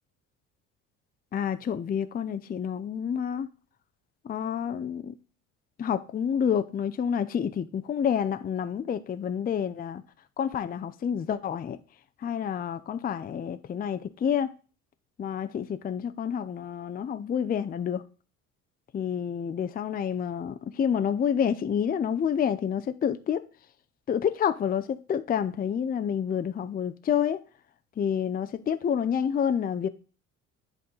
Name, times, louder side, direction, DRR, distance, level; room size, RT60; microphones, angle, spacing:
voice 1, 1.3-3.5 4.2-5.1 5.8-10.0 10.4-11.8 12.2-14.5 15.2-18.0 18.9-23.4 24.1-27.4 28.0-29.9, left 8 dB, 25° left, 0.5 m, -28 dB
10.5 x 3.6 x 3.9 m
hypercardioid pair, 60°, 39 cm